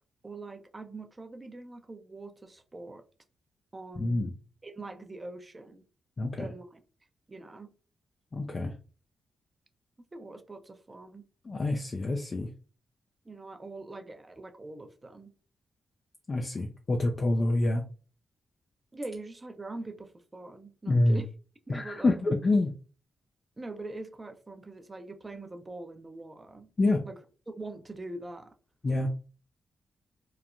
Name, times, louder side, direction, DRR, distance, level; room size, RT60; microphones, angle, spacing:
voice 1, 0.2-3.0 3.7-4.3 4.6-5.8 6.4-6.8 7.3-7.7 10.1-11.2 13.3-15.3 18.9-21.3 21.7-22.2 23.6-26.7 27.0-27.2 27.5-28.5, right 2 dB, 30° right, 0.5 m, -43 dB
voice 2, 4.0-4.3 6.2-6.5 8.3-8.7 11.5-12.5 16.3-17.8 20.9-21.2 21.7-22.7 26.8-27.0 28.8-29.1, left 2 dB, 45° left, 0.4 m, -27 dB
3.0 x 2.1 x 2.4 m
supercardioid pair, 50°, 0 cm